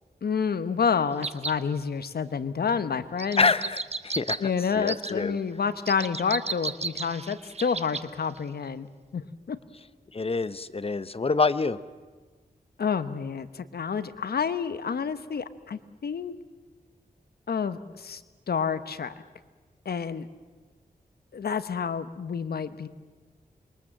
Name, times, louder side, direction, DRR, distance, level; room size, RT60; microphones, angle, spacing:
voice 1, 0.2-3.5 4.4-8.9 9.1-9.6 12.8-16.3 17.5-18.2 18.5-19.1 19.8-20.3 21.3-22.9, left 6 dB, 80° left, 12 dB, 1.1 m, -29 dB
sound 1, 1.2-1.6 3.2-4.4 4.9-5.1 5.9-8.1 8.4-8.5, right 4 dB, 40° right, 1.0 m, -33 dB
voice 2, 3.4-5.4 10.1-11.8, left 4 dB, 35° left, 15 dB, 0.9 m, -26 dB
26.5 x 22.5 x 7.6 m, 1.4 s
wide cardioid pair, 75°, 16 cm